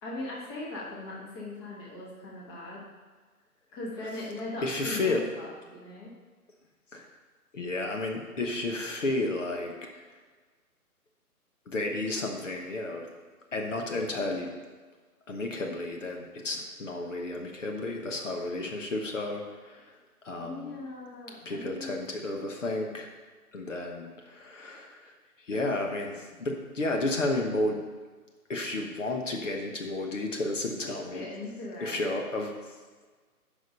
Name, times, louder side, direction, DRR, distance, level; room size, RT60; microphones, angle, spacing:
voice 1, 0.0-2.9 3.7-6.1 20.4-22.0 30.8-32.0, left 2 dB, 15° left, -4 dB, 1.3 m, -39 dB
voice 2, 4.6-5.2 6.9-7.1 7.5-9.9 11.7-13.1 13.5-14.5 15.3-19.9 20.2-20.8 21.4-23.1 23.5-25.1 25.4-27.8 28.5-31.3 31.8-32.7, left 2 dB, 55° left, 2 dB, 1.2 m, -32 dB
9.0 x 5.2 x 5.5 m, 1.4 s
figure-of-eight pair, 140°, 46 cm